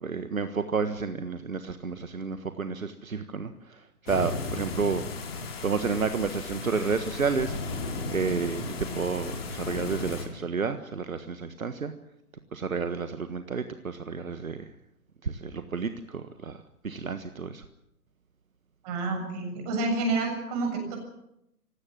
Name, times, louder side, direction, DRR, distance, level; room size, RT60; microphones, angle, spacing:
voice 1, 0.0-5.0 5.6-7.6 8.1-11.9 12.5-14.7 15.2-17.6, right 5 dB, 60° right, 10 dB, 1.6 m, -31 dB
sound 1, 4.1-10.2, left 3 dB, 40° left, 5.0 m, -35 dB
voice 2, 18.8-21.0, right 3 dB, 25° right, 3 dB, 7.4 m, -29 dB
26.0 x 17.0 x 7.5 m, 0.80 s
figure-of-eight pair, 135°, 45 cm